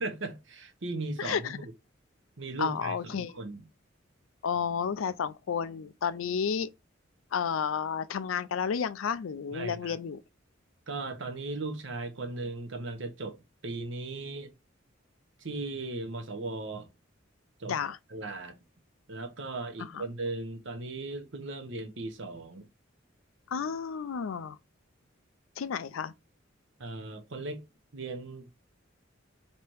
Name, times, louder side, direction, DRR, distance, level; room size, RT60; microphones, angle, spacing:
voice 1, 0.0-1.6 2.4-3.7 9.5-10.0 10.9-13.4 13.6-14.5 15.4-16.9 17.6-17.7 18.1-18.6 19.1-22.7 26.8-27.6 27.9-28.5, right 3 dB, 70° right, 0.9 m, -37 dB
voice 2, 1.2-1.6 2.6-3.3 4.4-6.7 7.3-10.2 17.7-18.0 19.9-20.0 23.5-24.6 25.6-26.1, left 7 dB, 90° left, 0.4 m, -31 dB
3.3 x 2.9 x 4.6 m
head